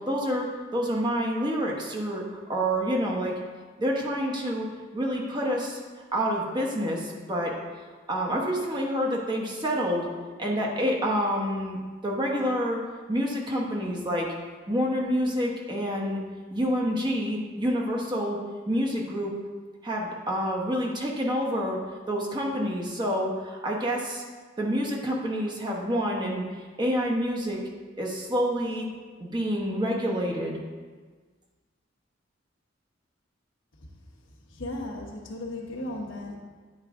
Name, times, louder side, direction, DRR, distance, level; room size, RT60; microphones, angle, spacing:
voice 1, 0.0-3.3 3.8-4.7 4.9-5.8 6.1-7.5 8.1-10.1 10.4-12.8 13.1-14.3 14.7-16.2 16.5-18.4 18.7-19.3 19.8-21.8 22.1-24.2 24.6-26.4 26.8-27.6 28.0-28.9 29.2-30.6, equal, 25° right, -2 dB, 0.9 m, -28 dB
voice 2, 34.5-36.4, left 1 dB, 75° left, -1 dB, 1.1 m, -35 dB
9.0 x 4.7 x 3.6 m, 1.5 s
head